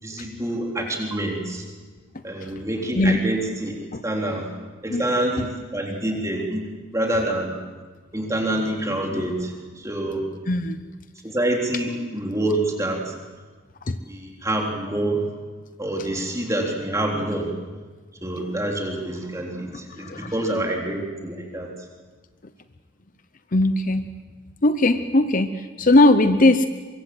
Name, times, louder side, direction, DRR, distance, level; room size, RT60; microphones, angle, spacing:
voice 1, 0.0-1.6 2.2-3.7 4.0-4.5 4.8-7.5 8.1-10.3 11.2-13.2 14.0-15.3 15.8-17.5 18.2-21.7, right 1 dB, 15° right, 0 dB, 3.7 m, -26 dB
voice 2, 10.5-10.8 13.9-14.0 20.0-20.3 23.5-24.1 24.6-26.6, left 2 dB, 40° left, 10 dB, 0.8 m, -19 dB
24.0 x 23.0 x 7.8 m, 1.4 s
head